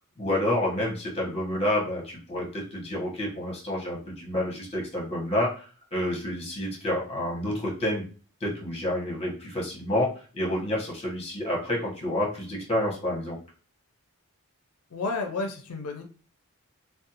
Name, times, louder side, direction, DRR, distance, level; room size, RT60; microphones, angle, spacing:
voice 1, 0.2-8.0 8.4-13.4, left 1 dB, 25° left, -2 dB, 1.0 m, -29 dB
voice 2, 14.9-16.0, left 3 dB, 90° left, 5 dB, 0.5 m, -31 dB
2.5 x 2.1 x 2.7 m, 0.39 s
head